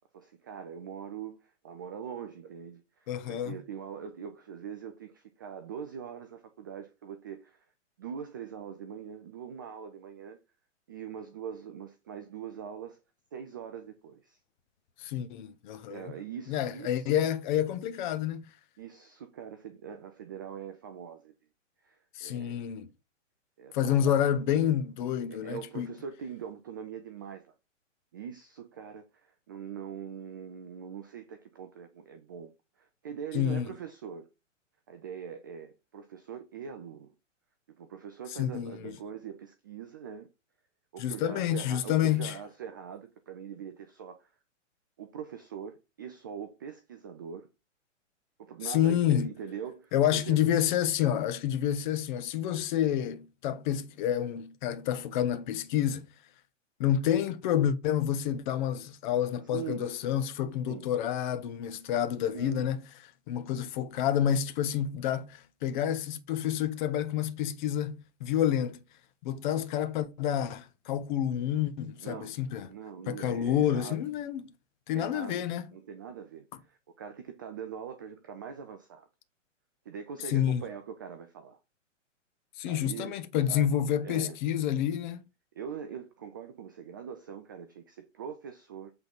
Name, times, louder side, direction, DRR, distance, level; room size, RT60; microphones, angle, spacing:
voice 1, 0.1-7.6 8.0-10.4 10.9-13.0 13.3-14.4 15.9-17.1 18.8-21.3 21.8-22.6 23.6-24.1 25.3-27.5 28.1-32.5 32.8-34.3 34.9-37.1 37.8-40.3 40.9-44.3 45.0-47.5 48.4-50.4 59.5-59.9 60.7-60.9 62.3-62.7 72.0-72.4 72.7-74.0 74.9-75.4 75.7-79.1 79.9-81.6 82.7-83.1 83.5-83.8 84.0-84.4 85.5-88.9, right 7 dB, 20° right, 0.3 m, -42 dB
voice 2, 3.1-3.6 15.0-16.1 16.5-18.5 22.1-22.9 23.7-25.9 33.3-33.7 38.3-38.9 41.0-42.4 48.6-49.3 49.9-56.1 56.8-62.8 63.3-68.8 69.2-72.7 73.1-74.5 74.9-75.7 80.3-80.6 82.6-85.2, left 10 dB, 40° left, 1.1 m, -29 dB
8.0 x 3.8 x 5.4 m
figure-of-eight pair, 120°, 38 cm